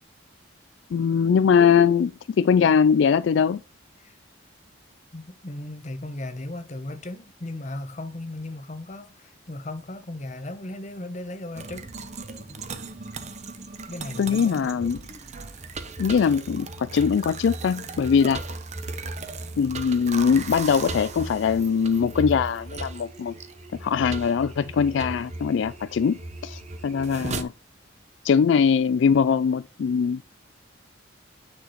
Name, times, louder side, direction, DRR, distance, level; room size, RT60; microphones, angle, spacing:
voice 1, 0.9-2.1 2.4-3.6 14.2-15.0 16.0-18.4 19.6-23.3 23.8-27.5 28.2-30.2, left 6 dB, 65° left, 0.3 m, -21 dB
voice 2, 5.1-11.9 13.9-14.6, left 2 dB, 35° left, 0.9 m, -36 dB
sound 1, 11.6-27.4, right 3 dB, 35° right, 0.8 m, -36 dB
9.4 x 6.0 x 3.1 m
head